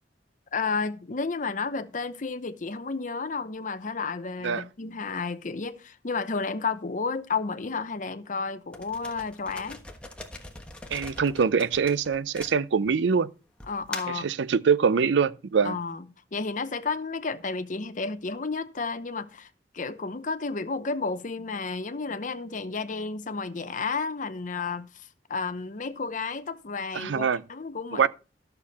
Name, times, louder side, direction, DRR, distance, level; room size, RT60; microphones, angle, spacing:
voice 1, 0.5-9.8 13.7-14.3 15.6-16.1 16.3-19.5 19.7-28.1, left 4 dB, 45° left, 0.7 m, -32 dB
sound 1, 8.7-13.0 13.6-14.3, left 2 dB, 5° left, 1.3 m, -41 dB
voice 2, 10.9-13.3 14.1-15.8 26.9-27.4 27.9-28.1, right 6 dB, 80° right, 0.5 m, -24 dB
12.5 x 6.8 x 4.1 m
head